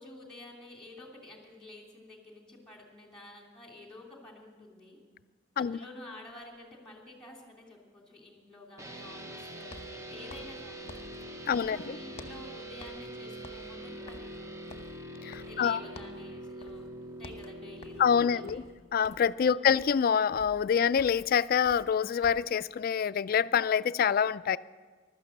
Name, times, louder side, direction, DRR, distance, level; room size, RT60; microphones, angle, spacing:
voice 1, 0.0-5.0 5.5-10.9 11.7-14.7 15.4-18.7 19.5-19.8, left 2 dB, 5° left, 0 dB, 3.0 m, -50 dB
sound 1, 6.3-6.4 9.6-12.5 12.8-13.1 13.4-15.7 16.0-16.3 16.6-16.9 17.1-22.6, left 2 dB, 35° left, 1.0 m, -51 dB
sound 2, 8.8-18.5, right 1 dB, 15° right, 0.8 m, -44 dB
voice 2, 11.5-12.0 15.2-15.8 18.0-18.6 18.9-24.6, left 7 dB, 50° left, 16 dB, 0.3 m, -26 dB
15.0 x 12.0 x 6.5 m, 1.4 s
head